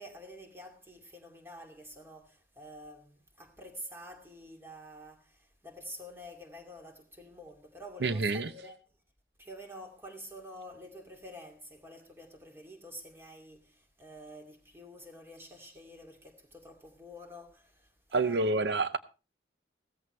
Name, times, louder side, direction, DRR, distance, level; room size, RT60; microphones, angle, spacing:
voice 1, 0.0-8.8 9.4-18.4, equal, 15° right, 2.5 m, -48 dB
voice 2, 8.0-8.5 18.1-19.0, right 3 dB, 70° right, 0.7 m, -28 dB
16.5 x 14.0 x 3.2 m
head